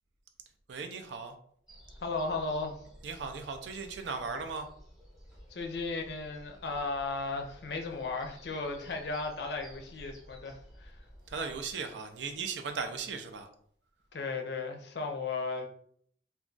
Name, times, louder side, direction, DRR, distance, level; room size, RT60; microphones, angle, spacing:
voice 1, 0.7-1.3 3.0-4.7 11.3-13.5, right 5 dB, 75° right, 0.4 m, -37 dB
spring morning, 1.7-11.7, equal, 5° right, 0.8 m, -54 dB
voice 2, 2.0-2.7 5.5-10.9 14.1-15.7, left 3 dB, 65° left, 0.5 m, -35 dB
2.3 x 2.3 x 3.7 m
head